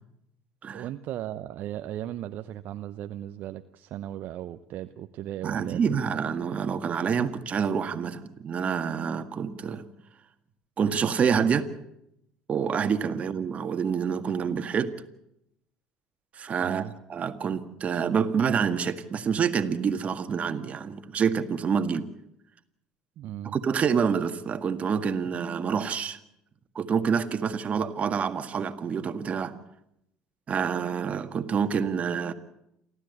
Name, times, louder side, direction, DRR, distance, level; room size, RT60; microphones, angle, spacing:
voice 1, 0.7-5.9 16.6-16.9 23.2-23.6, right 12 dB, 60° right, 9 dB, 0.8 m, -36 dB
voice 2, 5.4-9.9 10.8-11.7 12.5-14.9 16.4-22.1 23.4-26.2 26.8-29.6 30.5-32.3, right 6 dB, 40° right, 9 dB, 1.8 m, -27 dB
28.5 x 13.0 x 8.2 m, 0.80 s
hypercardioid pair, 70°, 4 cm